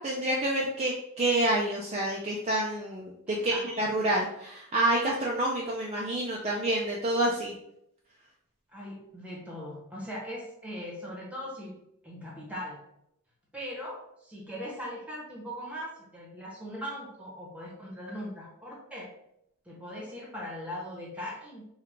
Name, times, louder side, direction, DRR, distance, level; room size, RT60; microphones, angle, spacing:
voice 1, 0.0-7.5, right 1 dB, 30° right, -3 dB, 0.4 m, -28 dB
voice 2, 3.3-3.9 8.7-11.8 12.0-12.8 13.5-19.1 19.6-21.7, equal, 5° right, -3 dB, 1.0 m, -40 dB
4.5 x 2.3 x 3.5 m, 0.77 s
head